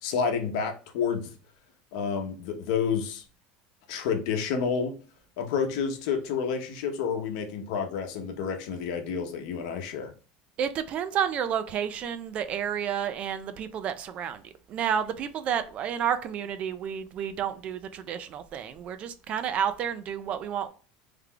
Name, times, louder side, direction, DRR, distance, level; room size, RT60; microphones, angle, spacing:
voice 1, 0.0-1.3 1.9-3.2 3.9-5.0 5.4-10.1, left 6 dB, 70° left, 0.8 m, -29 dB
voice 2, 10.6-14.4 14.7-20.7, right 8 dB, 35° right, 0.3 m, -30 dB
3.2 x 2.3 x 3.6 m
cardioid pair, 155°, 4 cm